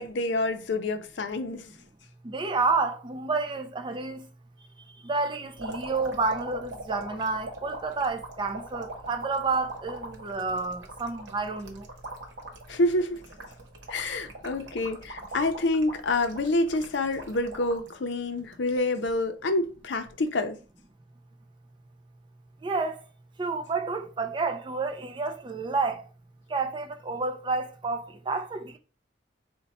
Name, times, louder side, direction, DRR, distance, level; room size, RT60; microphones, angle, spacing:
voice 1, 0.0-1.7 12.7-13.2 13.9-20.6, left 2 dB, 75° left, 0.5 m, -27 dB
voice 2, 2.2-4.2 5.0-11.9 22.6-23.0 23.4-26.0 26.5-28.8, right 3 dB, 25° right, 0.4 m, -30 dB
sound 1, 5.6-17.9 18.4-19.1 20.1-20.3, right 2 dB, 80° right, 0.9 m, -41 dB
4.1 x 2.2 x 4.0 m
head